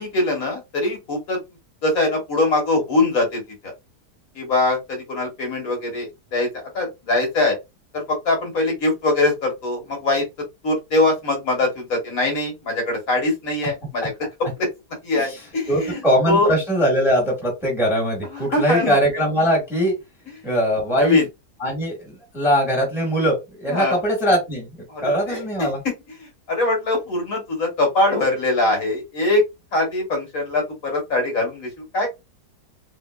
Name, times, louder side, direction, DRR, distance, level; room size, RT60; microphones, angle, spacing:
voice 1, 0.0-1.4 1.8-3.7 4.3-6.5 6.7-7.5 7.9-10.2 10.6-14.7 15.0-16.5 18.3-19.0 20.9-21.3 23.7-24.0 24.9-29.4 29.7-32.1, left 2 dB, 60° left, 1.6 m, -22 dB
voice 2, 15.7-19.9 20.4-21.2 21.6-24.7 25.0-25.8, equal, ahead, 1.3 m, -21 dB
3.6 x 2.9 x 2.3 m
omnidirectional pair, 1.8 m